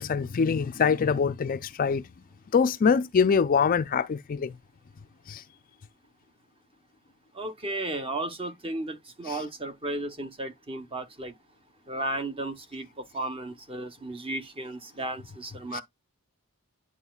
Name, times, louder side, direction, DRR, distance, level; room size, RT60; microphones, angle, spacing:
voice 1, 0.0-2.0 2.5-4.5 5.3-5.4 9.2-9.4 15.7-15.8, left 6 dB, 40° left, 0.4 m, -24 dB
voice 2, 7.4-11.3 11.9-12.9 13.1-15.8, right 2 dB, 25° right, 0.9 m, -34 dB
9.9 x 4.3 x 2.3 m
head